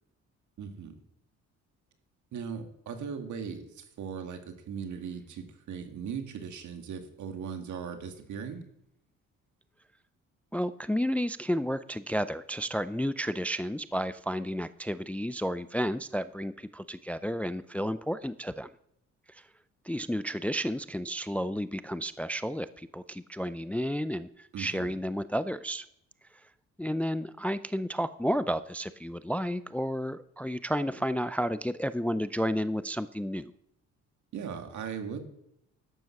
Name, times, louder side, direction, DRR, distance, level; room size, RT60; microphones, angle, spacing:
voice 1, 0.6-1.0 2.3-8.6 24.5-24.9 34.3-35.2, right 6 dB, 70° right, 5 dB, 2.0 m, -38 dB
voice 2, 10.5-18.7 19.3-19.4 19.8-25.8 26.8-33.5, equal, 5° left, 14 dB, 0.4 m, -32 dB
12.5 x 9.2 x 5.9 m, 0.75 s
cardioid pair, 90°, 30 cm